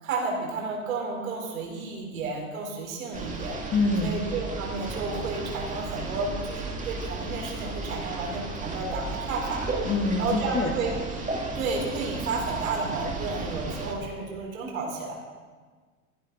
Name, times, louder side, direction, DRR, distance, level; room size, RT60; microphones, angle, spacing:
voice 1, 0.0-3.6 4.0-9.7 10.2-15.1, right 3 dB, 75° right, -1 dB, 3.9 m, -32 dB
sound 1, 3.1-13.9, right 3 dB, 20° right, 2.4 m, -34 dB
voice 2, 3.7-4.2 9.8-10.7, left 3 dB, 30° left, 4 dB, 1.8 m, -25 dB
14.5 x 11.5 x 4.0 m, 1.5 s
hypercardioid pair, 85°, 42 cm